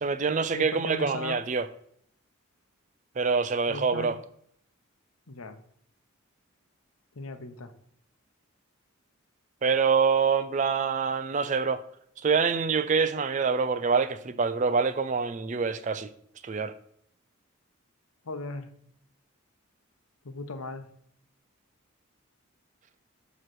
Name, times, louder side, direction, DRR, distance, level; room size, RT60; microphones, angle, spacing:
voice 1, 0.0-1.7 3.2-4.2 9.6-11.8 12.2-16.1 16.4-16.7, right 5 dB, 35° right, 0.4 m, -25 dB
voice 2, 0.5-1.4 3.7-4.1 5.3-5.6 7.2-7.7 18.3-18.7 20.2-20.9, left 2 dB, 85° left, 0.8 m, -37 dB
7.4 x 3.1 x 6.2 m
head